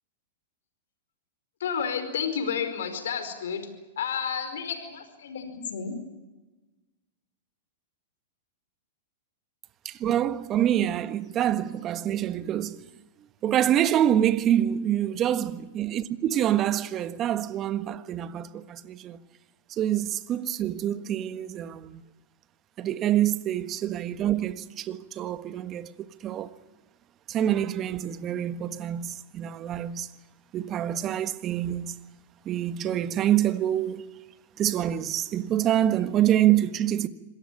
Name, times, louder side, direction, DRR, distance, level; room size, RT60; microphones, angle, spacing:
voice 1, 1.6-3.7 4.0-6.0, left 7 dB, 75° left, 4.9 m, -31 dB
voice 2, 9.8-12.9 13.4-19.2 19.7-22.0 22.8-25.9 26.2-26.5 27.3-30.1 30.5-31.9 32.4-34.0 34.6-37.1, right 11 dB, 30° right, 1.4 m, -26 dB
26.5 x 18.0 x 8.8 m
hypercardioid pair, 115°, 0 cm